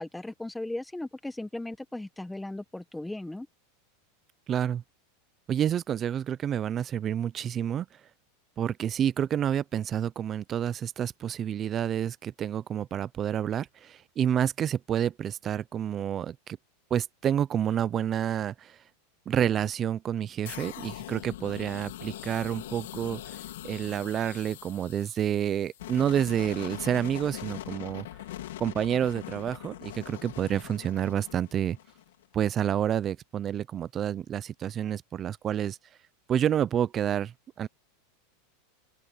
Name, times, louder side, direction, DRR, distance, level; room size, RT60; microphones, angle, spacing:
voice 1, 0.0-3.5, left 1 dB, 5° left, 0.8 m, -37 dB
voice 2, 4.5-4.8 5.5-7.9 8.6-16.6 16.9-18.8 19.3-23.4 23.6-28.1 28.6-31.8 32.3-35.8 36.3-37.7, right 9 dB, 20° right, 0.3 m, -29 dB
sound 1, 20.5-32.2, left 13 dB, 80° left, 1.6 m, -42 dB
open air
supercardioid pair, 175°, 0 cm